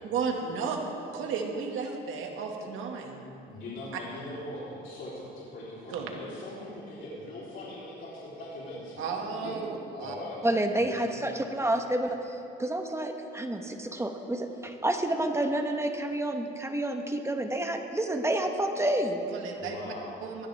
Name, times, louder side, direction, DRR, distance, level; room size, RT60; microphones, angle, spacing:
voice 1, 0.0-0.8 1.1-3.2 5.9-6.1 9.0-9.7 10.0-10.1 19.3-19.9 20.2-20.5, right 5 dB, 85° right, 1 dB, 2.0 m, -33 dB
voice 2, 3.5-9.1 9.4-9.5 9.9-10.4 10.8-11.3 19.6-20.1, left 1 dB, 75° left, -8 dB, 3.8 m, -41 dB
voice 3, 10.4-12.2 12.6-19.2, right 1 dB, 15° right, 4 dB, 1.2 m, -29 dB
19.5 x 14.0 x 3.5 m, 2.7 s
cardioid pair, 90°, 20 cm